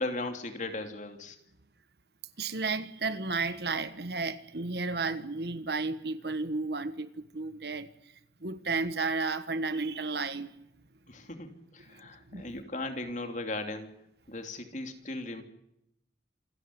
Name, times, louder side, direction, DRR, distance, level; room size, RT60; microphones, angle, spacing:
voice 1, 0.0-1.4 11.1-13.9 14.3-15.4, left 2 dB, 45° left, 2.9 m, -37 dB
voice 2, 2.4-7.9 8.4-10.5 11.9-12.0 12.3-12.6, right 3 dB, 65° right, 1.4 m, -33 dB
27.0 x 13.0 x 9.7 m
head